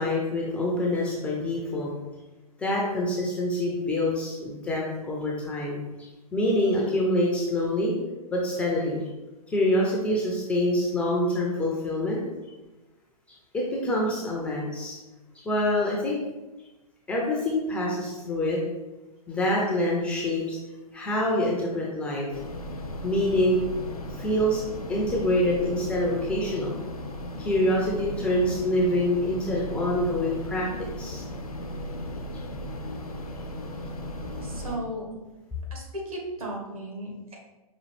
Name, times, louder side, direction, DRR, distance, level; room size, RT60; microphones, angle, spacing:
voice 1, 0.0-1.9 2.6-5.8 6.3-8.0 8.3-9.0 9.5-12.2 13.5-15.0 15.5-16.2 17.1-18.6 19.3-20.6 20.9-22.3 23.0-23.6 24.2-24.6 24.9-26.7 27.4-30.7 31.0-31.2, left 1 dB, 5° left, -3 dB, 0.3 m, -26 dB
sound 1, 22.3-34.8, left 1 dB, 75° left, 0.5 m, -36 dB
voice 2, 34.4-35.0 35.7-37.4, right 1 dB, 70° right, -1 dB, 1.2 m, -35 dB
5.0 x 2.4 x 3.1 m, 1.1 s
figure-of-eight pair, 115°, 19 cm